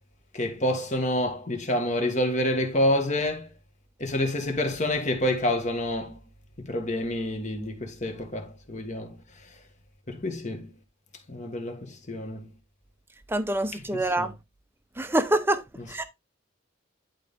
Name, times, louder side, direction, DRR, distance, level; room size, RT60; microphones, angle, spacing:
voice 1, 0.3-3.5 4.0-6.2 6.6-9.2 10.1-10.7 11.3-12.4 13.9-14.3, left 1 dB, 35° left, 1.5 m, -28 dB
voice 2, 13.3-14.3 15.0-15.6 15.9-16.0, right 1 dB, 10° right, 0.7 m, -25 dB
11.0 x 4.1 x 3.5 m
head